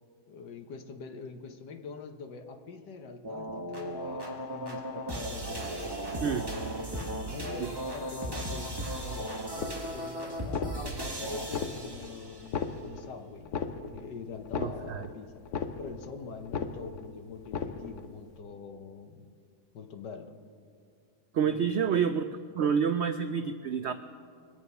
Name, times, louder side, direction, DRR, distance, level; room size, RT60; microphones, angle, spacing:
voice 1, 0.3-9.3 9.9-13.6 13.9-15.3 15.8-19.3 19.7-20.3 21.4-21.8, left 5 dB, 90° left, 5 dB, 1.7 m, -44 dB
sound 1, 3.2-12.5, right 1 dB, 15° right, 1.4 m, -36 dB
sound 2, 9.6-10.1 10.4-11.1 11.4-12.1 12.4-13.1 13.4-14.1 14.4-15.1 15.4-16.1 16.4-17.1 17.4-18.1, left 6 dB, 55° left, 1.0 m, -35 dB
voice 2, 14.6-15.1 21.3-22.2 22.5-23.9, right 7 dB, 85° right, 9 dB, 0.6 m, -28 dB
23.0 x 8.7 x 5.5 m, 2.3 s
omnidirectional pair, 1.8 m